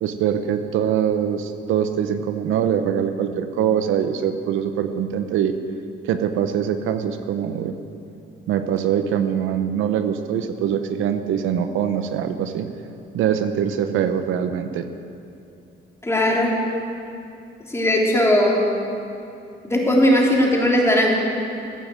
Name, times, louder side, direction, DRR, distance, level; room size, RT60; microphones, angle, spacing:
voice 1, 0.0-5.6 6.0-7.7 8.5-12.7 13.1-14.9, right 8 dB, 90° right, 9 dB, 0.8 m, -23 dB
voice 2, 16.0-16.5 17.7-18.6 19.6-21.1, left 1 dB, 15° left, -3 dB, 3.2 m, -18 dB
15.0 x 8.8 x 7.7 m, 2.7 s
cardioid pair, 90°, 20 cm